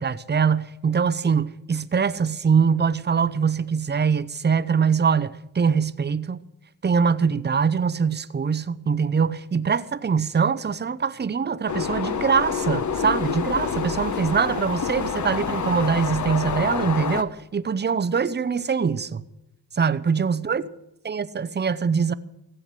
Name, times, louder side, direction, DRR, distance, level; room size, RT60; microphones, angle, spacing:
voice 1, 0.0-6.4 6.8-19.2 19.7-20.6 21.0-22.1, right 6 dB, 25° right, 0.7 m, -23 dB
sound 1, 11.7-17.2, left 6 dB, 45° left, 1.0 m, -27 dB
15.5 x 7.8 x 7.5 m
cardioid pair, 65°, 42 cm